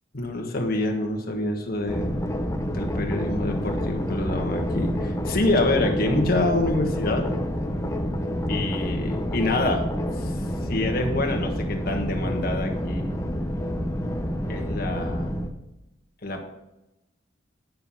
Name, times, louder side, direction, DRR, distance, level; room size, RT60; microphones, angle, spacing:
voice 1, 0.1-2.2 2.7-7.4 8.5-9.9 10.2-13.1 14.5-15.3 16.2-16.4, left 2 dB, 50° left, 2 dB, 1.5 m, -26 dB
sound 1, 1.9-15.5, equal, 15° left, 0.8 m, -28 dB
9.3 x 6.7 x 5.5 m, 0.93 s
head